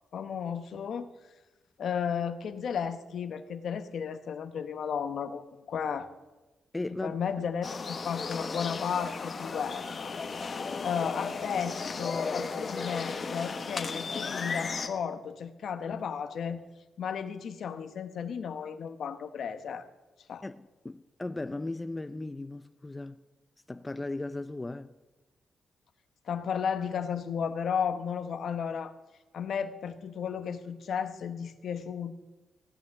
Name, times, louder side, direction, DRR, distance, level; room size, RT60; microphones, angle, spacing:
voice 1, 0.1-1.1 1.8-6.1 7.0-10.1 10.8-16.6 17.0-19.9 20.3-20.4 26.3-28.9 29.3-32.1, left 7 dB, 70° left, 1.1 m, -34 dB
voice 2, 6.7-7.2 20.4-23.2 23.7-24.9, left 2 dB, 20° left, 0.5 m, -37 dB
sound 1, 7.6-14.9, left 4 dB, 45° left, 1.3 m, -35 dB
16.0 x 9.2 x 7.0 m
cardioid pair, 105°, 0 cm